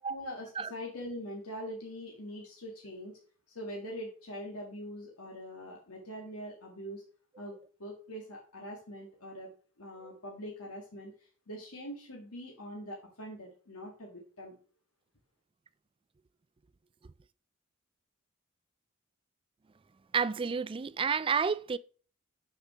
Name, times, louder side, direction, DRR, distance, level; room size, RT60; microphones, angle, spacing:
voice 1, 0.1-3.2 3.5-7.0 7.4-14.5, equal, 90° left, 1.8 m, -43 dB
voice 2, 20.1-21.8, right 6 dB, 25° right, 0.3 m, -30 dB
6.5 x 5.2 x 6.0 m
head